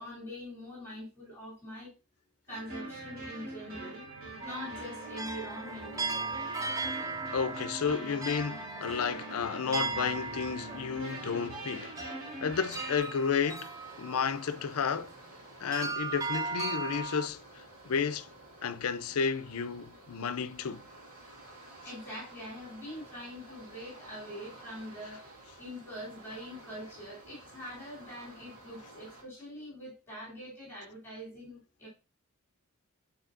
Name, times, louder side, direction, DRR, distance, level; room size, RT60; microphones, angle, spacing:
voice 1, 0.0-1.9 2.5-4.0 4.4-6.2 21.8-25.3 25.6-31.9, equal, 10° left, 3.0 m, -44 dB
sound 1, 2.5-13.0, right 2 dB, 45° right, 2.9 m, -43 dB
sound 2, 4.4-14.9 15.7-17.3, right 3 dB, 15° right, 0.3 m, -38 dB
voice 2, 7.3-11.9 12.4-13.7 14.0-15.1 15.6-18.3 18.6-20.8, left 6 dB, 85° left, 0.5 m, -32 dB
sound 3, 12.5-29.2, right 2 dB, 80° right, 2.5 m, -52 dB
9.1 x 4.1 x 2.5 m
head